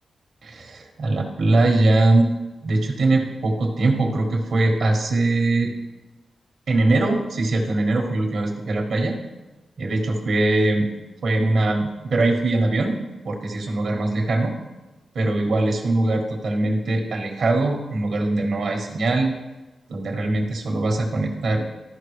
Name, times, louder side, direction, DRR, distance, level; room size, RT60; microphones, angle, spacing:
voice 1, 0.4-2.3 2.6-5.7 6.7-9.2 9.8-10.9 11.2-13.0 13.2-14.6 15.1-19.3 19.9-21.6, right 2 dB, 70° right, 1 dB, 1.5 m, -21 dB
13.5 x 5.6 x 3.3 m, 1.1 s
wide cardioid pair, 145°, 0 cm